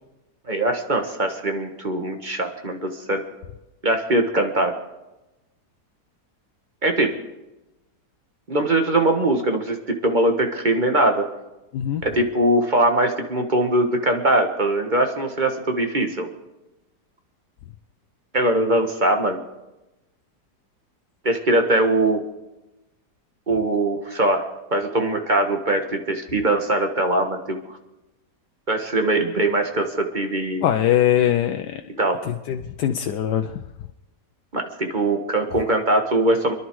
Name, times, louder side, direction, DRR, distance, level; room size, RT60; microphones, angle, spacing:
voice 1, 0.5-3.2 3.8-4.7 6.8-7.1 8.5-11.3 12.0-16.3 18.3-19.4 21.2-22.2 23.5-27.6 28.7-30.6 32.0-32.2 34.5-36.5, right 1 dB, 30° right, 4 dB, 1.5 m, -21 dB
voice 2, 30.6-31.8 32.3-33.6, left 10 dB, 90° left, 6 dB, 1.3 m, -22 dB
27.0 x 11.0 x 4.7 m, 1.0 s
omnidirectional pair, 1.8 m